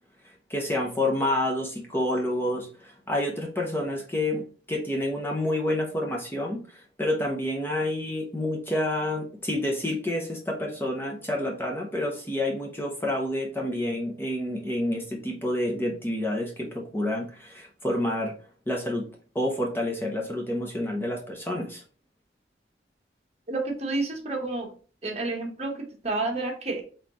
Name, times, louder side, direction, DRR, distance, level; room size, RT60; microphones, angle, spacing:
voice 1, 0.2-18.3 18.7-19.1 19.3-21.8, left 1 dB, 15° left, 0 dB, 0.7 m, -29 dB
voice 2, 23.5-24.7 25.0-26.8, right 2 dB, 35° right, 1 dB, 1.2 m, -30 dB
4.0 x 3.9 x 3.0 m, 0.38 s
head